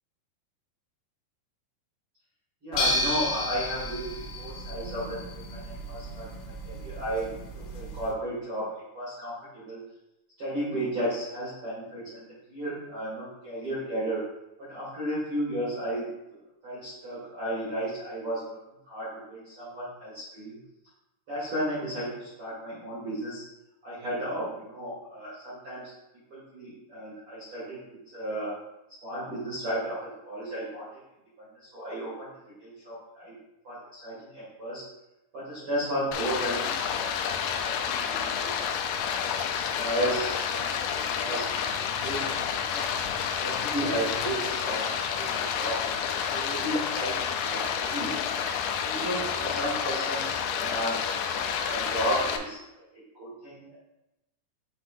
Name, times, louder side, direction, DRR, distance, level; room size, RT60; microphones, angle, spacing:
voice 1, 2.6-6.3 6.6-7.3 7.5-9.8 10.4-14.2 14.7-16.0 16.6-18.6 18.8-20.6 21.3-23.4 23.8-25.9 26.3-27.8 28.1-28.6 29.0-30.9 31.5-32.3 32.6-33.3 33.6-34.8 35.3-37.2 37.6-39.0 39.5-41.5 41.8-42.4 42.7-42.9 43.4-45.8 46.1-48.1 48.8-51.0 51.3-52.6 53.1-53.7, right 1 dB, 65° right, -10 dB, 1.3 m, -34 dB
sound 1, 2.7-8.1, left 1 dB, 70° left, 3.5 m, -33 dB
Stream, 36.1-52.4, left 7 dB, 90° left, 2.5 m, -29 dB
6.6 x 6.2 x 2.5 m, 0.94 s
omnidirectional pair, 5.8 m